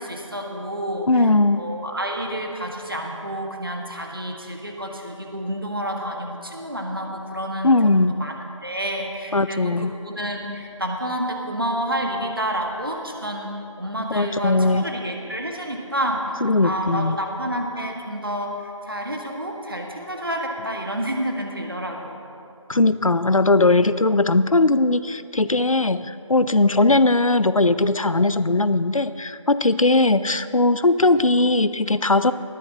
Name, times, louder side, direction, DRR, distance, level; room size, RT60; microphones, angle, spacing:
voice 1, 0.0-8.3 8.6-13.5 13.8-16.2 16.6-22.2, equal, 45° right, 1 dB, 1.6 m, -29 dB
voice 2, 1.1-1.6 7.6-8.2 9.3-9.9 14.1-14.9 16.4-17.2 22.7-32.3, left 2 dB, 80° left, 14 dB, 0.6 m, -19 dB
19.0 x 13.5 x 2.9 m, 2.5 s
figure-of-eight pair, 175°, 17 cm